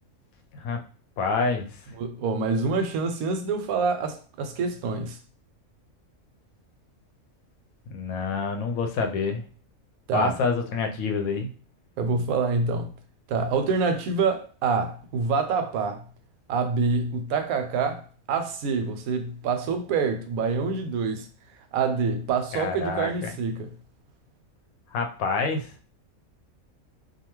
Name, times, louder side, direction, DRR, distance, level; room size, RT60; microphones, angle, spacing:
voice 1, 1.2-1.8 7.9-9.4 10.1-11.5 22.5-23.3 24.9-25.7, left 4 dB, 80° left, 1.0 m, -27 dB
voice 2, 2.0-5.2 10.1-10.4 12.0-12.9 13.3-16.0 16.5-18.0 18.3-21.3 21.7-23.7, right 4 dB, 90° right, 1.0 m, -26 dB
2.7 x 2.3 x 2.9 m
omnidirectional pair, 1.5 m